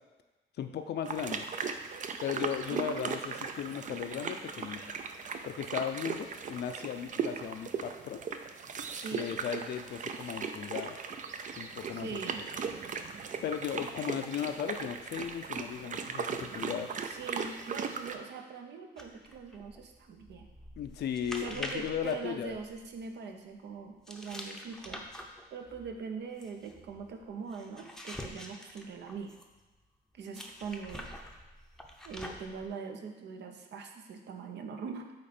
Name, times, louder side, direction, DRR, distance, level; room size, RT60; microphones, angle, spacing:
voice 1, 0.6-1.4 2.2-4.8 5.4-8.2 9.1-11.0 11.6-12.2 13.4-16.9 20.8-22.6, left 8 dB, 60° left, 8 dB, 0.6 m, -36 dB
sound 1, 1.1-18.2, right 6 dB, 40° right, 0.5 m, -38 dB
voice 2, 2.7-3.1 9.0-9.3 11.9-12.4 17.0-20.5 21.4-25.1 25.5-29.4 30.1-31.1 32.0-35.1, right 5 dB, 65° right, 4 dB, 0.8 m, -42 dB
sound 2, 19.0-23.1 24.1-29.6 30.3-32.7, left 1 dB, 5° left, 0.7 m, -46 dB
8.5 x 3.2 x 4.3 m, 1.2 s
cardioid pair, 105°, 19 cm